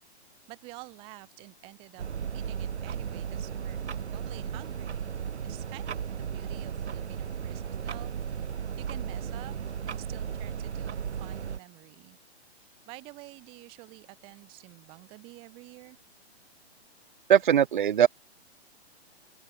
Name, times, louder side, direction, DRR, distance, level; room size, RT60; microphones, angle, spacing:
voice 1, 0.5-2.0 2.3-5.1 5.4-9.6 9.9-12.2 12.5-16.0, right 25 dB, 15° right, 2.7 m, -49 dB
sound 1, 2.0-11.6, right 7 dB, 80° right, 2.8 m, -35 dB
voice 2, 17.3-18.1, right 9 dB, 50° right, 0.8 m, -20 dB
open air
hypercardioid pair, 175°, 33 cm